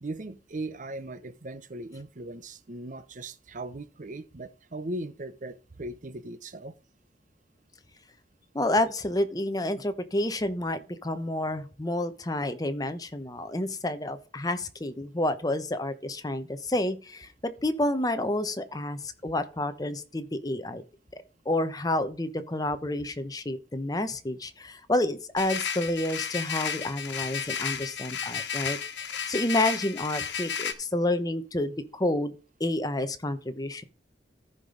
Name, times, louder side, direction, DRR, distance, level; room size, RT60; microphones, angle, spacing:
voice 1, 0.0-6.7, right 2 dB, 45° right, 0.7 m, -38 dB
voice 2, 8.5-20.8 21.1-32.3 32.6-33.8, left 1 dB, 20° left, 0.9 m, -29 dB
sound 1, 25.4-30.7, left 7 dB, 85° left, 1.3 m, -33 dB
14.5 x 5.2 x 3.8 m
head